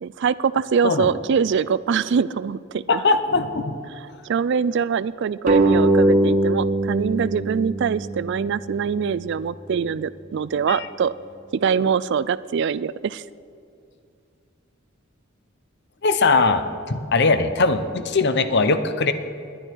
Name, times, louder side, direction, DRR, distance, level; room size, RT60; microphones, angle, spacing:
voice 1, 0.0-3.0 4.2-11.1 11.5-13.2, right 6 dB, 60° right, 18 dB, 0.3 m, -23 dB
voice 2, 2.9-3.8 10.7-10.9 16.0-16.6 16.9-19.1, left 3 dB, 55° left, 10 dB, 0.8 m, -20 dB
sound 1, 5.5-8.7, right 2 dB, 40° right, 1.3 m, -20 dB
19.5 x 11.5 x 4.6 m, 2.4 s
head